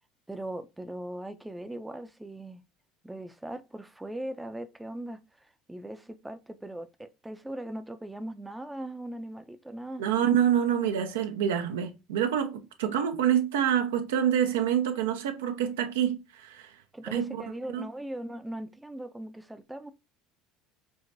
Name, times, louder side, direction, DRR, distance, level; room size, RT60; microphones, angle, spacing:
voice 1, 0.3-2.6 3.0-5.2 5.7-10.0 16.9-19.9, right 1 dB, 10° right, 0.4 m, -39 dB
voice 2, 10.0-16.7 17.1-17.3 17.7-17.8, right 9 dB, 85° right, 0.5 m, -26 dB
4.6 x 2.1 x 2.5 m
hypercardioid pair, 75°, 0 cm